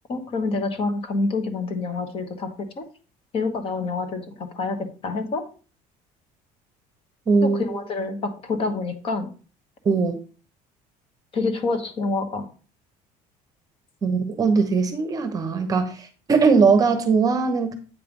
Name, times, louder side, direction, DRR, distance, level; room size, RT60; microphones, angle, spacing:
voice 1, 0.1-2.8 3.3-5.4 7.4-9.3 11.3-12.5, left 3 dB, 40° left, 7 dB, 1.2 m, -27 dB
voice 2, 7.3-7.6 9.8-10.2 14.0-17.7, right 4 dB, 25° right, 7 dB, 0.9 m, -20 dB
8.6 x 3.3 x 5.3 m, 0.36 s
cardioid pair, 165°, 15 cm